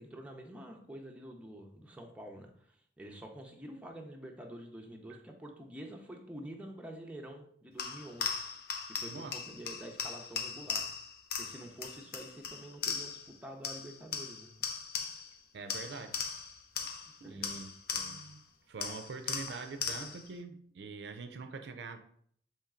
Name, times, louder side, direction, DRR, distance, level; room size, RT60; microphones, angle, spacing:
voice 1, 0.0-8.3 8.9-10.9 11.4-14.5 17.2-17.5, right 1 dB, 5° right, 0.5 m, -47 dB
sound 1, 7.8-13.3 13.6-15.4 15.7-18.4 18.8-20.3, left 6 dB, 60° left, 0.5 m, -39 dB
voice 2, 9.1-9.4 15.5-16.2 16.8-16.9 17.2-22.0, right 4 dB, 70° right, 0.4 m, -44 dB
4.3 x 3.1 x 3.6 m
head